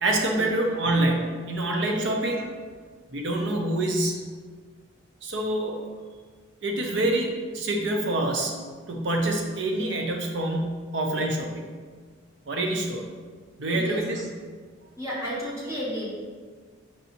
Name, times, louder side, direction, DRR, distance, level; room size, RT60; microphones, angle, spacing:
voice 1, 0.0-2.5 3.1-4.2 5.2-5.9 6.6-8.5 8.9-11.8 12.5-13.0 13.6-14.2, right 1 dB, 60° right, 1 dB, 0.6 m, -26 dB
voice 2, 13.7-14.0 15.0-16.1, equal, 15° right, -6 dB, 0.7 m, -33 dB
5.4 x 2.6 x 2.8 m, 1.5 s
head